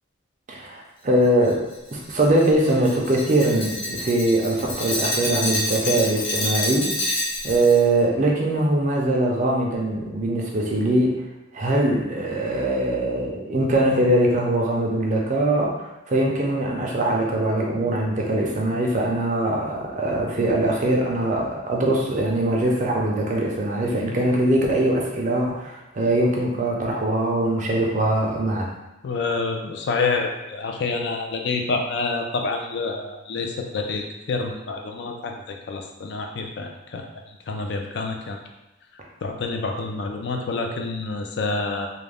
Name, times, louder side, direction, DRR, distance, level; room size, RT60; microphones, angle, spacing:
voice 1, 0.5-1.7 1.9-6.9 7.4-11.1 11.5-28.7, right 1 dB, 40° right, -1 dB, 0.4 m, -22 dB
Glass, 1.4-7.8, left 1 dB, 85° left, 0.9 m, -28 dB
voice 2, 29.0-38.4 39.2-41.9, left 3 dB, 60° left, 3 dB, 0.4 m, -28 dB
2.4 x 2.0 x 3.3 m, 1.0 s
head